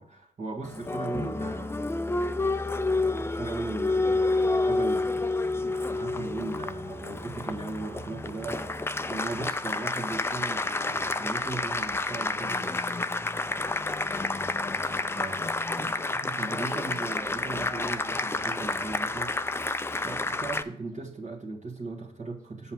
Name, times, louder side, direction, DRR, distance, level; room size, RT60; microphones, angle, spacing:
voice 1, 0.0-2.2 2.8-13.0 15.2-15.5 15.8-15.9 16.2-22.7, right 3 dB, 45° right, -3 dB, 1.6 m, -38 dB
Applause, 0.6-20.6, left 2 dB, 15° left, 0.5 m, -29 dB
7.3 x 5.6 x 6.1 m, 0.75 s
supercardioid pair, 55°, 18 cm